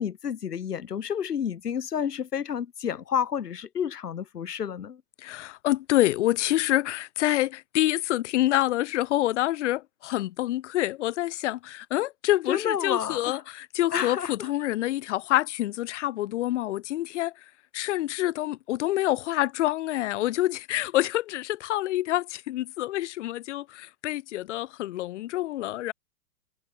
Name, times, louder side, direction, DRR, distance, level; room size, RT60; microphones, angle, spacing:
voice 1, 0.0-5.0 12.5-13.4 13.9-14.5, left 8 dB, 90° left, 1.5 m, -30 dB
voice 2, 5.2-17.3 17.7-25.9, left 15 dB, 50° left, 1.5 m, -27 dB
hypercardioid pair, 135°, 46 cm